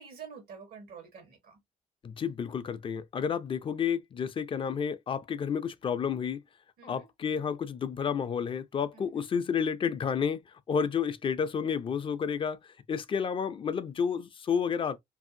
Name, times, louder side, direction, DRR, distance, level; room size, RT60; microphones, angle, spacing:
voice 1, 0.0-1.6 6.8-7.1 8.9-9.2, right 6 dB, 80° right, 1.1 m, -48 dB
voice 2, 2.0-6.4 6.8-10.4 10.7-12.6 12.9-15.0, left 7 dB, 35° left, 0.4 m, -30 dB
2.7 x 2.6 x 2.5 m
cardioid pair, 115°, 15 cm